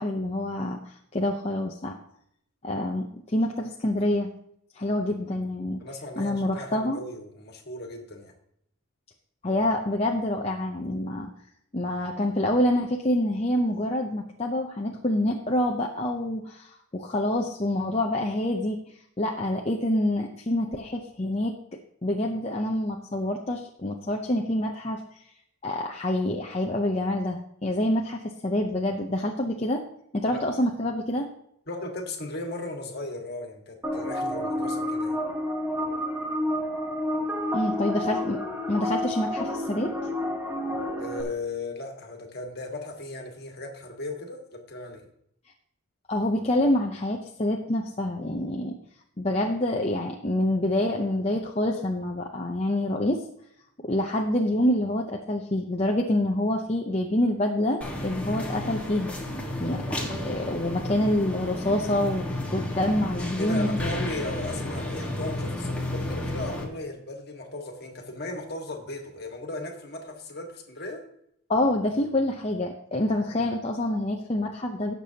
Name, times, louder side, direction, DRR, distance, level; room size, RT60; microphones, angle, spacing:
voice 1, 0.0-1.9 2.6-4.3 4.7-5.8 6.2-7.0 9.4-11.3 11.7-18.8 19.2-25.0 25.6-29.8 30.1-31.3 37.5-38.4 38.7-39.9 46.1-48.8 49.2-53.2 53.8-59.1 59.6-62.2 62.5-63.8 71.5-74.9, left 1 dB, 30° left, 1 dB, 0.7 m, -27 dB
voice 2, 5.8-8.3 30.3-30.4 31.7-35.2 41.0-45.1 63.4-71.0, left 2 dB, 45° left, 3 dB, 1.6 m, -36 dB
sound 1, 33.8-41.2, left 1 dB, 10° right, 1.3 m, -29 dB
sound 2, 57.8-66.6, left 1 dB, 5° left, 1.5 m, -32 dB
17.5 x 6.8 x 2.9 m, 0.72 s
head